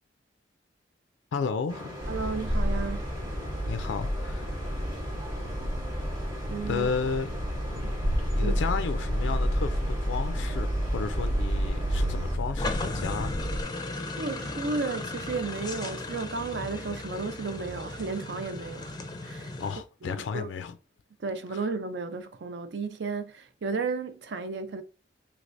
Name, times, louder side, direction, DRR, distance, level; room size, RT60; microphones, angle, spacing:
voice 1, 1.3-2.0 3.7-4.8 6.7-7.3 7.7-13.5 19.6-20.8, left 5 dB, 90° left, 0.3 m, -33 dB
sound 1, 1.7-12.4, equal, 20° right, 0.8 m, -41 dB
sound 2, 2.0-13.6, equal, 50° right, 0.9 m, -30 dB
voice 2, 2.1-3.1 6.5-6.9 7.8-7.9 8.4-8.6 14.2-19.6 20.0-20.5 21.2-24.8, right 4 dB, 70° right, 0.5 m, -33 dB
sound 3, 12.6-19.8, left 2 dB, 20° left, 0.4 m, -36 dB
3.2 x 3.2 x 2.6 m
head